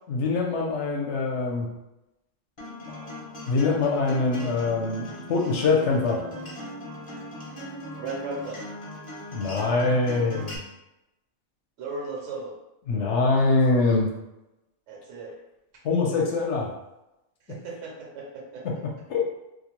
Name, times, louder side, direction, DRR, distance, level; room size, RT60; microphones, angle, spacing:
voice 1, 0.1-1.7 2.9-3.1 3.5-6.2 9.3-10.6 12.9-14.1 15.8-16.7 18.6-19.2, left 3 dB, 70° left, 0 dB, 0.8 m, -24 dB
Acoustic guitar, 2.6-10.6, left 1 dB, 40° left, 0.5 m, -39 dB
voice 2, 8.0-8.6 11.8-12.5 14.9-15.3 17.5-18.6, right 3 dB, 80° right, -1 dB, 1.0 m, -36 dB
2.5 x 2.1 x 2.9 m, 0.93 s
omnidirectional pair, 1.3 m